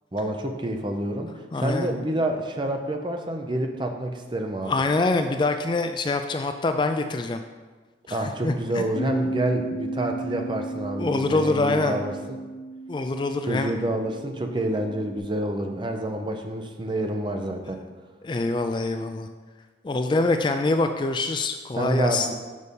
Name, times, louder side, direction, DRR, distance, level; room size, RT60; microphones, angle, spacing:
voice 1, 0.1-1.3 1.6-4.7 8.1-12.4 13.5-17.8 21.8-22.3, right 1 dB, 25° right, 3 dB, 0.7 m, -28 dB
voice 2, 1.5-1.9 4.6-7.4 8.1-8.8 11.0-12.0 12.9-13.7 18.2-19.3 19.8-22.3, left 3 dB, 25° left, 7 dB, 0.3 m, -25 dB
Bass guitar, 8.9-15.2, right 2 dB, 45° left, 1.6 m, -34 dB
6.4 x 5.3 x 5.3 m, 1.3 s
head